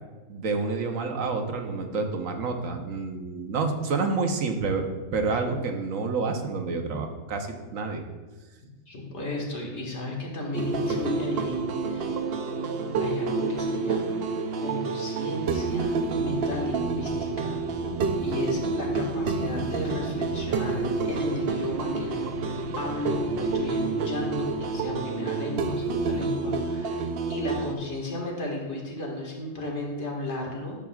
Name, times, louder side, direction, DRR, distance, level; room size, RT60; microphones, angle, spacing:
voice 1, 0.3-8.0, right 4 dB, 80° right, 4 dB, 1.3 m, -28 dB
voice 2, 8.9-12.2 13.0-14.2 14.6-17.6 18.2-30.8, left 2 dB, 60° left, -2 dB, 2.0 m, -34 dB
sound 1, 10.5-27.7, right 4 dB, 60° right, 0.7 m, -28 dB
sound 2, 15.8-24.9, left 3 dB, 80° left, 1.4 m, -42 dB
12.0 x 7.3 x 2.4 m, 1.3 s
omnidirectional pair, 1.3 m